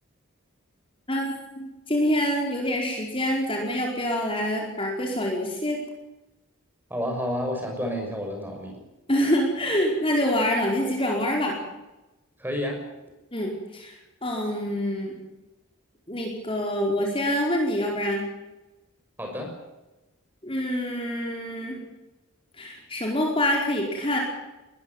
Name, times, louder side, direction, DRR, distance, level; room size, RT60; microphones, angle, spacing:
voice 1, 1.1-5.8 9.1-11.6 13.3-13.9 14.2-15.2 16.1-18.3 20.4-21.8 22.6-24.2, equal, 25° left, 0 dB, 4.8 m, -26 dB
voice 2, 6.9-8.8 12.4-12.8 19.2-19.5, equal, 10° right, 2 dB, 6.2 m, -30 dB
21.5 x 15.5 x 9.7 m, 1.0 s
head